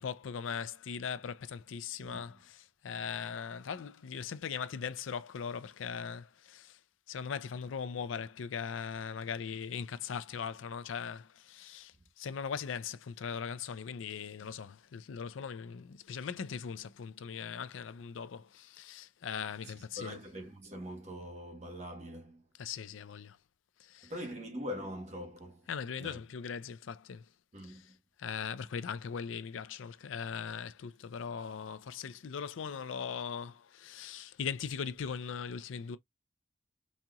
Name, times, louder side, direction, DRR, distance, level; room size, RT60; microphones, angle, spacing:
voice 1, 0.0-6.8 7.1-20.2 22.6-23.4 23.8-24.1 25.7-27.3 27.6-27.8 28.2-36.0, left 6 dB, 85° left, 0.4 m, -40 dB
voice 2, 2.0-2.4 19.6-22.5 24.0-25.7 26.0-26.2 27.5-28.0, equal, 35° right, 1.1 m, -43 dB
4.2 x 2.9 x 2.3 m
head